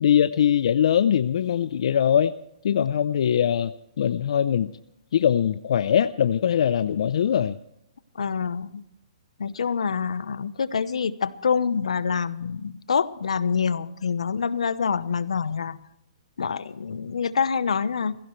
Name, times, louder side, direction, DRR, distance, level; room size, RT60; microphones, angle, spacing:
voice 1, 0.0-2.3 2.6-3.7 4.0-4.7 5.1-7.5, left 9 dB, 65° left, 13 dB, 0.5 m, -21 dB
voice 2, 8.1-8.8 9.4-15.8 16.4-18.1, left 6 dB, 85° left, 16 dB, 0.9 m, -26 dB
21.5 x 16.0 x 3.2 m, 0.84 s
hypercardioid pair, 150°, 3 cm